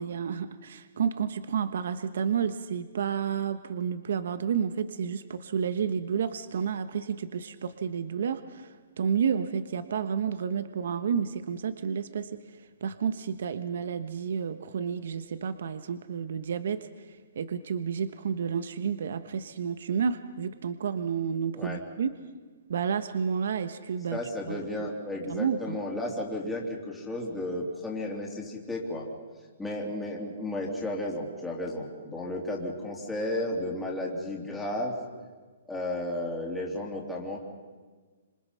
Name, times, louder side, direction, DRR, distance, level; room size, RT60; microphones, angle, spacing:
voice 1, 0.0-22.1 22.7-24.2 24.5-24.9 25.3-25.8, right 7 dB, 60° right, 11 dB, 1.2 m, -31 dB
voice 2, 24.1-29.1 29.6-35.0 35.7-37.4, left 1 dB, 5° left, -3 dB, 3.2 m, -33 dB
27.0 x 26.5 x 5.7 m, 1.4 s
hypercardioid pair, 170°, 0 cm